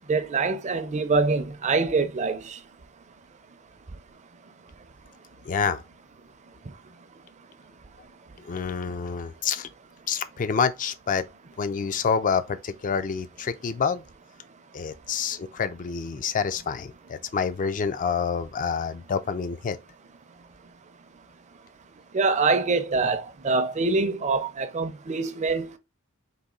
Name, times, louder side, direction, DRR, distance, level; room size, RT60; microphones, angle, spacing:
voice 1, 0.1-2.6 22.1-25.8, right 4 dB, 30° right, 0.5 m, -25 dB
voice 2, 5.5-5.8 8.4-9.7 10.1-11.2 11.6-14.0 14.7-19.8, left 6 dB, 35° left, 0.4 m, -27 dB
4.0 x 2.7 x 3.7 m
head